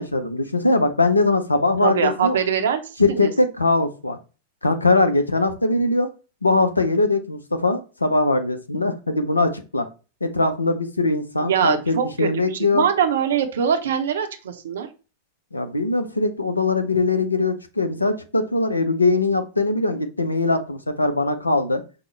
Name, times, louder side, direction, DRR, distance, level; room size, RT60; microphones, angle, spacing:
voice 1, 0.0-2.4 3.0-4.2 4.6-6.1 6.4-9.9 10.2-12.8 15.5-21.8, left 2 dB, 80° left, 8 dB, 0.5 m, -21 dB
voice 2, 1.8-2.8 3.1-3.3 11.4-12.3 12.7-14.9, right 8 dB, 60° right, 7 dB, 0.6 m, -22 dB
5.2 x 2.1 x 3.2 m, 0.33 s
figure-of-eight pair, 90°, 0 cm